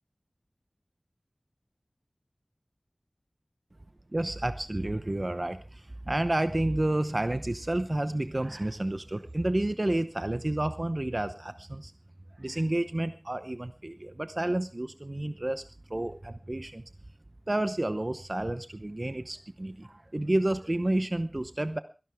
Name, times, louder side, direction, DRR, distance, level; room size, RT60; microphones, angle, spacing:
voice 1, 4.1-11.9 12.4-15.6 15.9-16.8 17.5-21.8, right 1 dB, 40° right, 11 dB, 0.8 m, -30 dB
22.0 x 11.5 x 3.5 m, 0.32 s
wide cardioid pair, 45°, 0 cm